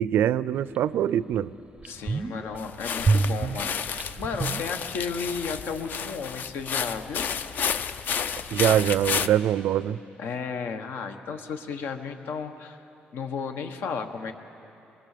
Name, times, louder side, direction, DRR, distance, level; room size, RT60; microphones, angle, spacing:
voice 1, 0.0-1.5 8.5-10.0, right 10 dB, 80° right, 17 dB, 0.4 m, -23 dB
sound 1, 0.8-0.9 1.3-1.4 1.8-2.6 3.0-5.3 5.5-5.6, right 4 dB, 25° right, 0.5 m, -27 dB
voice 2, 1.8-7.3 10.2-12.8 13.1-14.3, left 5 dB, 80° left, 6 dB, 1.4 m, -34 dB
sound 2, 2.6-9.3, left 7 dB, 55° left, 0.6 m, -31 dB
23.0 x 22.5 x 6.7 m, 2.9 s
cardioid pair, 160°, 4 cm